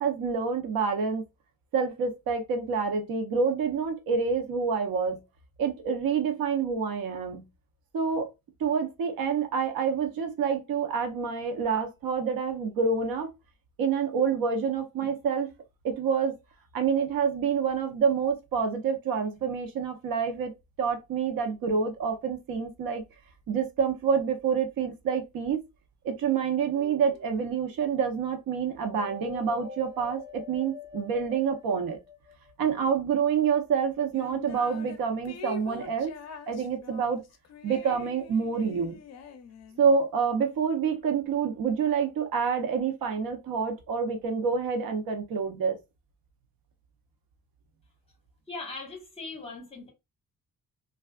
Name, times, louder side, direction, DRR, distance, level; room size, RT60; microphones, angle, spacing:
voice 1, 0.0-1.2 1.7-5.2 5.6-7.4 7.9-8.3 8.6-13.3 13.8-15.5 15.8-16.4 16.7-20.5 20.8-23.0 23.5-25.6 26.0-32.0 32.6-36.1 36.5-37.2 37.6-39.0 39.8-45.8, right 6 dB, 90° right, 0.7 m, -27 dB
sound 1, 26.7-27.4 28.9-32.7, left 4 dB, 50° right, 1.4 m, -44 dB
sound 2, 34.1-35.0 35.3-39.9, left 6 dB, 50° left, 0.5 m, -45 dB
voice 2, 48.5-49.9, left 3 dB, 15° left, 1.1 m, -39 dB
3.2 x 2.4 x 2.3 m
wide cardioid pair, 165°, 34 cm